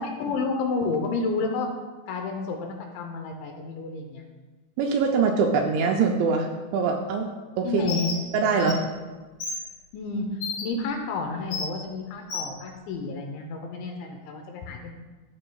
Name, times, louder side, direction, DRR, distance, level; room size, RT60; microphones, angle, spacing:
voice 1, 0.0-1.7 2.1-4.2 7.6-8.1 9.9-14.9, left 3 dB, 75° left, 2 dB, 2.9 m, -30 dB
voice 2, 4.8-7.3 7.6-7.8 8.3-8.9, right 5 dB, 80° right, 2 dB, 2.7 m, -23 dB
Bird, 7.9-8.2 8.6-8.7 9.4-9.6 10.4-10.6 11.5-11.7 12.3-12.5, left 4 dB, 55° left, 3.4 m, -31 dB
15.0 x 6.9 x 2.3 m, 1.3 s
omnidirectional pair, 5.8 m